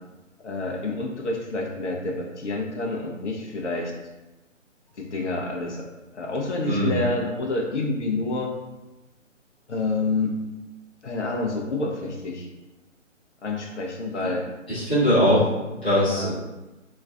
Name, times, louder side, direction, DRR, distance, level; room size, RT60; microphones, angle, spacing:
voice 1, 0.4-3.9 5.0-5.9 6.1-8.5 9.7-10.4 11.0-12.5 13.4-14.4 16.1-16.3, left 2 dB, 65° left, 0 dB, 0.7 m, -28 dB
voice 2, 6.6-7.0 14.2-14.3 14.7-16.3, equal, 10° left, -18 dB, 0.5 m, -21 dB
2.9 x 2.5 x 2.3 m, 1.1 s
figure-of-eight pair, 150°, 38 cm